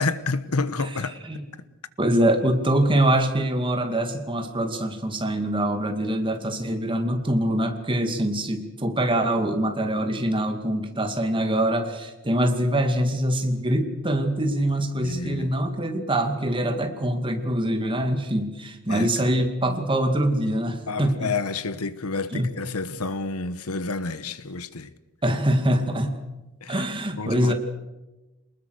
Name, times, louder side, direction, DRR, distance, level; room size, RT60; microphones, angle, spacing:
voice 1, 0.0-1.2 15.0-15.5 18.9-19.1 20.9-24.9 26.6-26.7 27.2-27.5, left 3 dB, 80° left, 1.2 m, -29 dB
voice 2, 2.0-21.3 22.3-22.5 25.2-26.2 26.7-27.5, right 1 dB, 25° right, 2.3 m, -24 dB
28.0 x 20.0 x 6.5 m
head